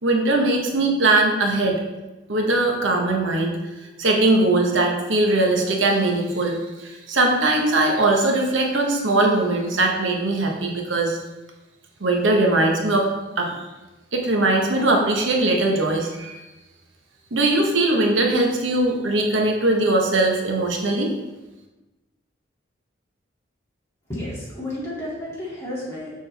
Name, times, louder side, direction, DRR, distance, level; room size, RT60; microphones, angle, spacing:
voice 1, 0.0-1.8 2.3-3.6 4.0-11.2 12.0-13.1 13.4-13.6 14.1-16.4 17.3-21.1, right 2 dB, 80° right, 1 dB, 1.0 m, -20 dB
voice 2, 24.1-26.1, left 1 dB, 15° left, -8 dB, 2.4 m, -31 dB
6.5 x 6.2 x 3.4 m, 1.1 s
head